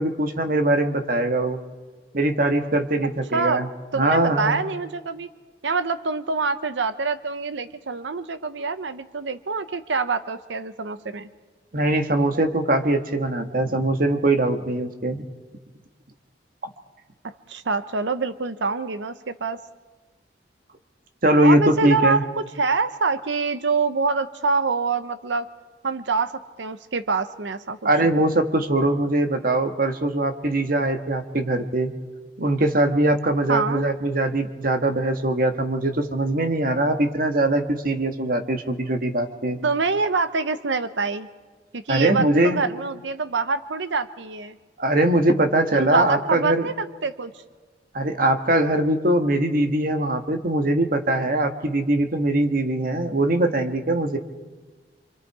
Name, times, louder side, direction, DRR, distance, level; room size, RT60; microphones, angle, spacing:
voice 1, 0.0-1.6 2.1-3.7 3.9-4.6 11.7-15.2 21.2-22.2 27.8-31.9 32.4-39.6 41.9-42.6 44.8-46.7 47.9-54.2, right 1 dB, 50° right, 6 dB, 1.6 m, -22 dB
voice 2, 3.9-5.3 5.6-11.3 17.2-19.6 21.4-25.5 25.8-27.8 33.5-33.8 39.6-41.3 41.7-44.6 45.7-47.3, right 4 dB, 85° right, 12 dB, 0.8 m, -25 dB
26.5 x 25.5 x 4.8 m, 1.4 s
head